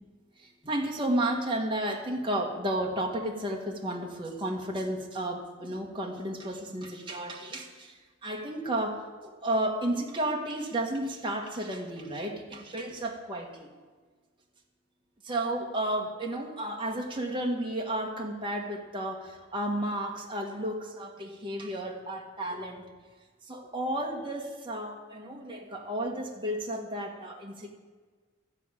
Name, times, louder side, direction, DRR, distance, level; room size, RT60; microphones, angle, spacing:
voice 1, 0.4-7.9 8.2-13.7 15.2-22.8 23.5-27.7, right 1 dB, 25° right, 0 dB, 1.2 m, -32 dB
14.0 x 5.0 x 8.9 m, 1.5 s
head